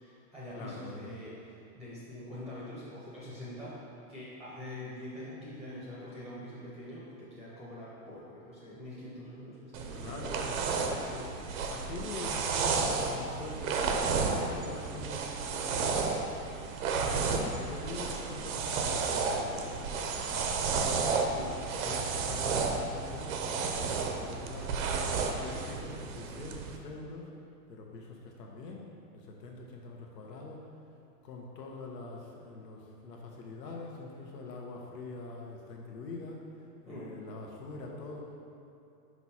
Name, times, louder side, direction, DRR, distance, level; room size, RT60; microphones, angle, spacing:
voice 1, 0.0-3.8 4.1-10.4 14.4-14.6 21.3-21.5 36.9-37.1, left 1 dB, ahead, -8 dB, 0.7 m, -44 dB
voice 2, 0.5-1.1 9.9-13.8 14.1-16.2 16.9-20.6 21.7-24.8 25.3-27.3 27.7-30.7 31.2-36.4 36.8-38.3, left 3 dB, 85° left, 0 dB, 1.4 m, -44 dB
sound 1, 9.7-26.8, right 4 dB, 60° right, 0.7 m, -32 dB
5.8 x 4.8 x 4.2 m, 2.7 s
hypercardioid pair, 145°, 48 cm